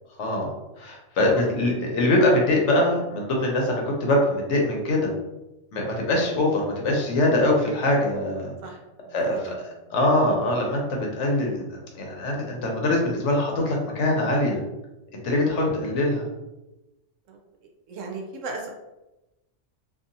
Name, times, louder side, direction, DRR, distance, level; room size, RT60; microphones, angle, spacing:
voice 1, 0.2-5.1 5.7-8.5 9.1-9.5 9.9-10.8 11.1-14.6 15.2-16.3, left 1 dB, 70° left, 0 dB, 1.0 m, -23 dB
voice 2, 1.3-1.8 8.6-8.7 9.0-9.9 17.3-17.4 17.9-18.7, right 3 dB, 80° right, 2 dB, 0.9 m, -38 dB
2.7 x 2.6 x 2.5 m, 0.99 s
omnidirectional pair, 1.3 m